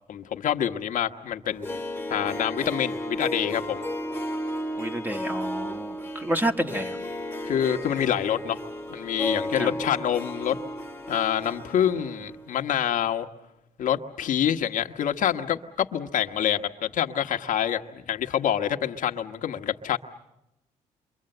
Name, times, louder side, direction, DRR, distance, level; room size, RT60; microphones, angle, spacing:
voice 1, 0.1-1.8 2.1-3.8 7.4-8.6 8.9-10.6 11.1-13.3 13.8-20.0, left 10 dB, 65° left, 5 dB, 1.3 m, -26 dB
Harp, 1.5-12.5 12.7-12.8, equal, 15° left, 1.7 m, -34 dB
voice 2, 4.8-7.0 9.6-9.7, right 1 dB, 15° right, 5 dB, 1.8 m, -29 dB
28.0 x 24.0 x 7.9 m, 0.88 s
cardioid pair, 80°, 14 cm